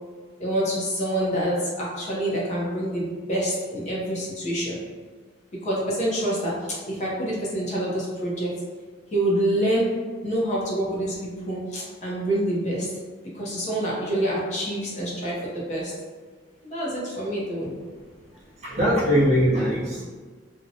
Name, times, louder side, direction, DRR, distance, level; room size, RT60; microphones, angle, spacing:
voice 1, 0.4-4.8 5.6-8.5 9.1-9.9 10.2-12.9 13.3-15.9 16.6-17.7, right 1 dB, 40° left, -5 dB, 0.6 m, -26 dB
voice 2, 18.6-20.0, equal, 35° right, -8 dB, 0.7 m, -21 dB
2.6 x 2.1 x 2.7 m, 1.5 s
head